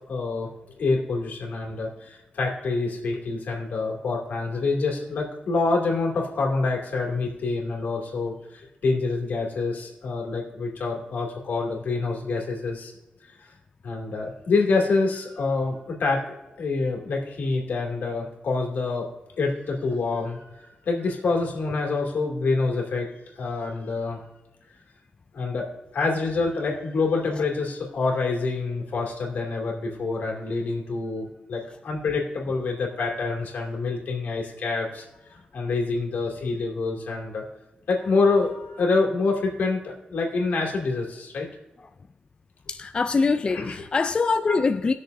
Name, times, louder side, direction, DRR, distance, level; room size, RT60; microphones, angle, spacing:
voice 1, 0.1-0.5 0.8-12.9 13.8-16.2 16.6-19.1 19.4-23.1 23.3-24.2 25.3-25.7 25.9-37.4 37.9-41.5 43.4-43.8 44.1-44.2 44.5-44.6, left 3 dB, 80° left, 2.3 m, -26 dB
voice 2, 42.7-44.9, left 4 dB, 35° left, 0.3 m, -24 dB
19.5 x 6.5 x 2.6 m
wide cardioid pair, 125°, 3 cm